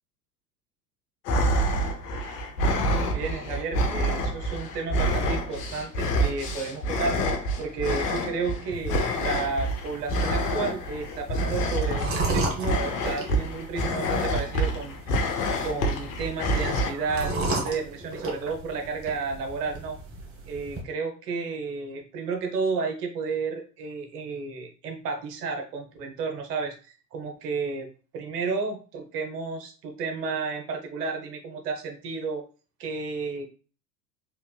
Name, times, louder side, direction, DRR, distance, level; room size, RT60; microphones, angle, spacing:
sound 1, 1.2-16.9, equal, 70° left, 0.8 m, -27 dB
voice 1, 3.1-7.2 7.6-20.0 20.5-27.9 28.1-32.4 32.8-33.5, right 4 dB, 70° right, 3 dB, 1.0 m, -32 dB
sound 2, 8.7-20.8, right 2 dB, 30° right, 1.0 m, -35 dB
3.3 x 2.9 x 2.3 m, 0.37 s
hypercardioid pair, 80°, 49 cm